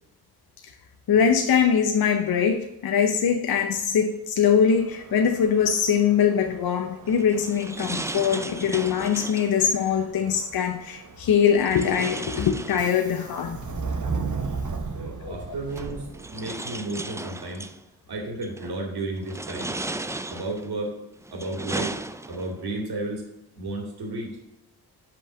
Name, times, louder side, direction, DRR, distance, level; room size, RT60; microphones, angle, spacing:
voice 1, 1.1-13.6 15.2-15.3, left 7 dB, 60° left, 0.8 m, -22 dB
Subway metro underground, 4.7-16.6, right 4 dB, 45° right, 1.2 m, -37 dB
sound 1, 7.0-9.6 11.6-13.3 14.6-14.7 15.7-17.8 18.4-18.8 19.2-20.7 21.2-22.6, right 2 dB, 10° right, 0.4 m, -35 dB
voice 2, 14.9-16.0 16.3-17.7 18.1-19.7 20.3-20.9 21.3-22.0 22.3-23.2 23.6-24.3, right 2 dB, 65° right, 2.6 m, -32 dB
5.7 x 5.4 x 6.3 m
cardioid pair, 70°, 40 cm